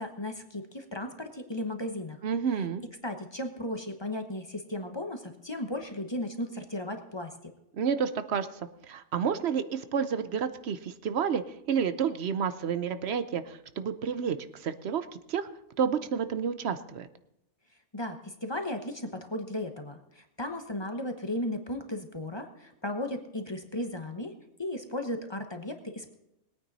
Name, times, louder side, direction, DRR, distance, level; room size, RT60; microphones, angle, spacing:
voice 1, 0.0-2.2 3.0-7.3 17.9-24.3 24.6-26.1, left 1 dB, 25° left, 5 dB, 1.0 m, -35 dB
voice 2, 2.2-2.8 7.7-8.5 8.9-15.5 15.8-17.1, right 7 dB, 65° right, 12 dB, 0.9 m, -30 dB
20.5 x 9.2 x 4.1 m, 0.84 s
omnidirectional pair, 1.2 m